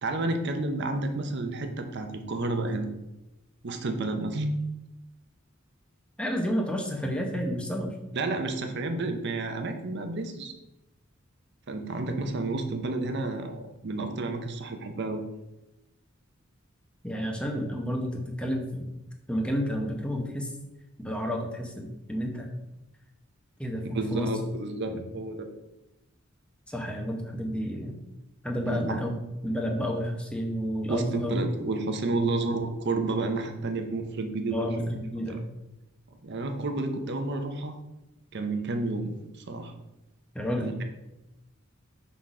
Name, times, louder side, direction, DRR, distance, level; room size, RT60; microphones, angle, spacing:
voice 1, 0.0-2.9 3.6-4.7 8.1-10.5 11.7-15.2 23.9-25.5 28.7-29.0 30.9-34.7 35.3-35.4 36.2-37.7 38.3-39.1 39.5-39.7 40.6-40.8, right 2 dB, 55° right, 6 dB, 0.8 m, -30 dB
voice 2, 6.2-7.9 17.0-18.9 19.3-20.5 21.0-22.5 23.6-24.3 24.9-25.1 26.7-27.9 28.4-29.1 29.4-31.4 32.2-32.4 34.5-35.4 40.3-40.7, equal, 5° left, 1 dB, 0.9 m, -30 dB
5.8 x 4.0 x 4.8 m, 0.97 s
head